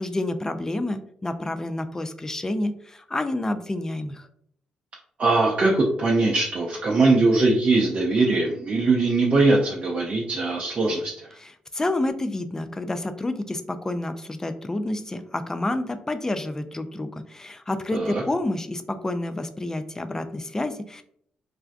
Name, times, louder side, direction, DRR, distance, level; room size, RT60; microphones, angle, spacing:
voice 1, 0.0-4.3 11.4-21.0, left 2 dB, 20° left, 9 dB, 0.3 m, -29 dB
voice 2, 5.2-11.3 17.9-18.2, right 3 dB, 45° right, -3 dB, 0.5 m, -21 dB
2.4 x 2.1 x 2.3 m, 0.68 s
supercardioid pair, 55°, 3 cm